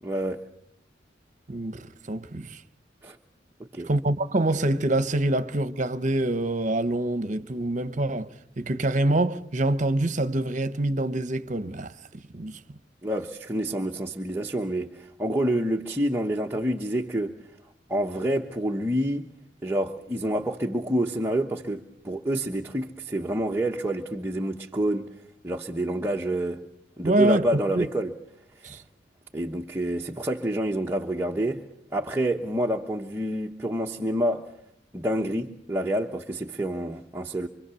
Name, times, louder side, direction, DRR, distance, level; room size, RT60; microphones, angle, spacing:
voice 1, 0.0-0.5 3.0-3.2 3.6-3.9 13.0-17.4 17.9-19.3 19.6-25.1 25.4-26.6 27.0-28.1 28.5-28.8 29.3-31.6 31.9-34.5 34.9-37.5, right 1 dB, 15° right, 1.1 m, -28 dB
voice 2, 1.5-2.6 3.8-8.3 8.6-12.6 27.0-27.4 27.7-27.9 28.6-28.8, right 1 dB, 40° right, 1.1 m, -26 dB
26.0 x 25.0 x 7.0 m
head